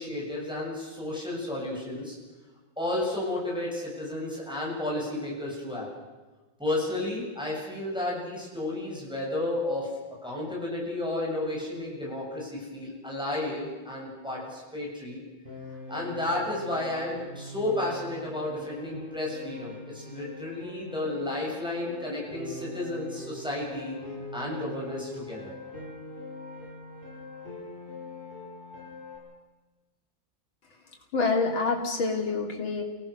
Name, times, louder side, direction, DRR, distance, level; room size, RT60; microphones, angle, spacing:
voice 1, 0.0-2.2 2.8-5.9 6.6-9.9 10.2-15.2 15.9-24.0 24.3-25.5, left 1 dB, ahead, -4 dB, 7.6 m, -32 dB
Piano, 15.5-29.2, left 2 dB, 25° right, 7.9 m, -43 dB
voice 2, 31.1-32.8, left 3 dB, 90° left, 1 dB, 3.8 m, -27 dB
29.0 x 18.5 x 6.6 m, 1.2 s
omnidirectional pair, 2.1 m